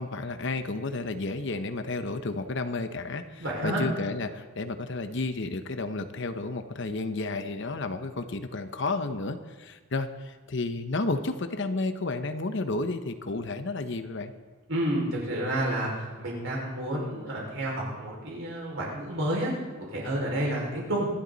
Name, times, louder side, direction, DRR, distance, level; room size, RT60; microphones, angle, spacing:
voice 1, 0.0-14.3, left 3 dB, 55° left, 8 dB, 0.9 m, -32 dB
voice 2, 3.4-3.8 14.7-19.5 19.9-21.1, right 1 dB, 65° right, -3 dB, 5.5 m, -30 dB
25.0 x 11.5 x 4.1 m, 1.3 s
head